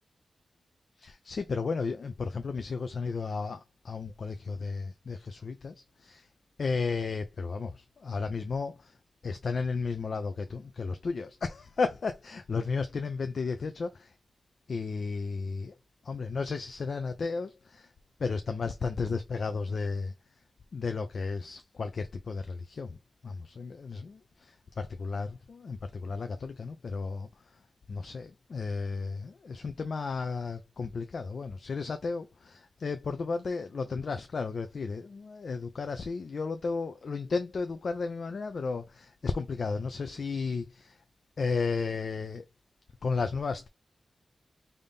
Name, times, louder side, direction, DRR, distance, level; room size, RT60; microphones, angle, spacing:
voice 1, 1.0-6.3 6.6-8.9 9.2-14.1 14.7-15.7 16.0-17.9 18.2-20.1 20.7-23.0 23.2-27.3 27.9-41.0 41.4-42.4 43.0-43.7, left 4 dB, 65° left, 0.4 m, -33 dB
3.5 x 2.7 x 3.4 m
wide cardioid pair, 100°, 0 cm